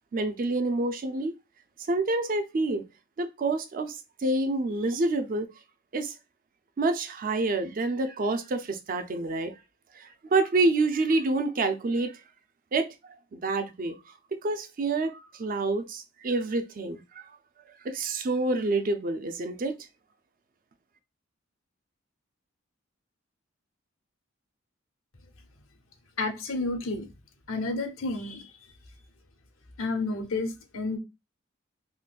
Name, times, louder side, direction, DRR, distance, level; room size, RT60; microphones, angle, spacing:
voice 1, 0.1-1.3 1.9-2.8 3.2-3.9 4.2-5.5 5.9-6.1 6.8-9.5 10.0-12.2 12.7-12.9 13.3-14.0 14.3-17.3 17.8-19.8, right 2 dB, 45° right, 0.4 m, -27 dB
voice 2, 26.2-27.1 27.5-28.5 29.8-31.0, left 3 dB, 90° left, 0.7 m, -30 dB
3.7 x 2.5 x 2.2 m
head